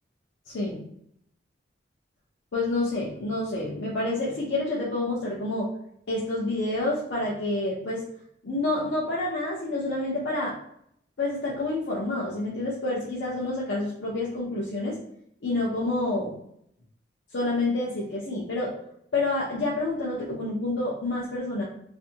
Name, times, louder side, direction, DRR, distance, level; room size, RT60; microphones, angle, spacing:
voice 1, 0.5-0.8 2.5-5.7 6.1-8.0 8.4-10.6 11.2-15.0 15.4-16.3 17.3-18.8 19.1-21.6, left 2 dB, 75° left, -5 dB, 0.6 m, -28 dB
2.6 x 2.5 x 2.6 m, 0.72 s
head